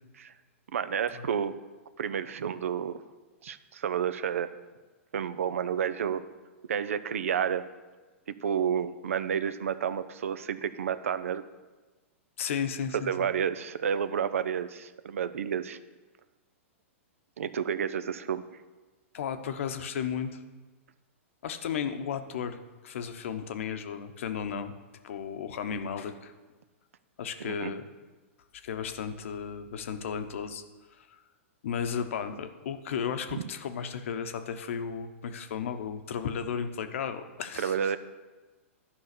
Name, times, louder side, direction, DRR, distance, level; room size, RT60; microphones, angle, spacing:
voice 1, 0.7-1.6 2.0-3.0 3.4-4.5 5.1-6.3 6.7-7.7 8.3-11.4 12.9-15.8 17.4-18.4 27.4-27.7 33.3-33.4 37.6-38.0, right 8 dB, 80° right, 14 dB, 0.6 m, -30 dB
voice 2, 12.4-13.1 19.1-20.4 21.4-24.7 25.0-26.3 27.2-27.8 28.6-30.6 30.9-31.2 31.6-37.9, left 7 dB, 70° left, 8 dB, 0.9 m, -34 dB
11.5 x 5.6 x 6.7 m, 1.2 s
hypercardioid pair, 125°, 7 cm